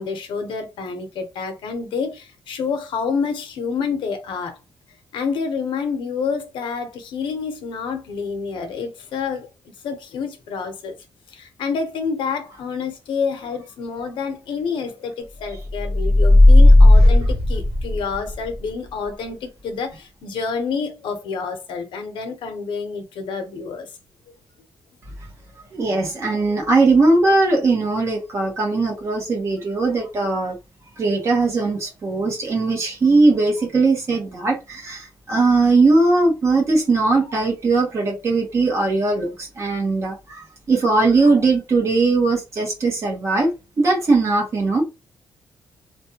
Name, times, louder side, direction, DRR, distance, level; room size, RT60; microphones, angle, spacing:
voice 1, 0.0-4.6 5.1-9.5 9.8-11.0 11.3-23.9, left 5 dB, 90° left, 0.7 m, -28 dB
sound 1, 15.7-18.3, left 1 dB, ahead, 1.0 m, -12 dB
voice 2, 25.7-30.6 31.0-44.8, right 3 dB, 35° right, 1.0 m, -19 dB
2.5 x 2.2 x 2.8 m
wide cardioid pair, 180°, 8 cm